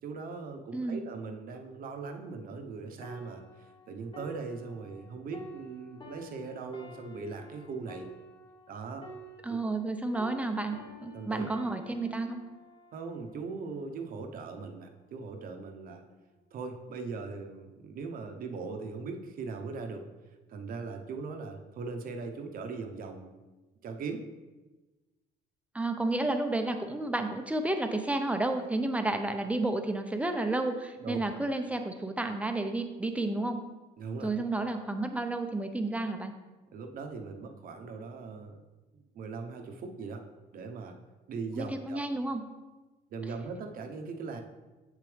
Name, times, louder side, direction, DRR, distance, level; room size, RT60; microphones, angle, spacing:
voice 1, 0.0-8.1 8.7-9.1 9.5-9.6 11.1-11.5 12.9-16.0 16.5-20.1 20.5-23.3 23.8-24.2 31.0-31.2 34.0-34.6 36.7-38.6 38.9-40.2 40.5-40.9 41.3-42.1 43.1-44.4, right 4 dB, 55° right, 5 dB, 0.9 m, -40 dB
sound 1, 3.0-9.9 10.1-13.7 14.4-14.6, equal, 30° left, 1.2 m, -50 dB
voice 2, 9.4-10.8 11.0-12.4 25.7-33.6 34.2-36.3 41.6-42.4, right 2 dB, 10° right, 6 dB, 0.7 m, -31 dB
7.4 x 7.1 x 3.4 m, 1.2 s
cardioid pair, 110°, 17 cm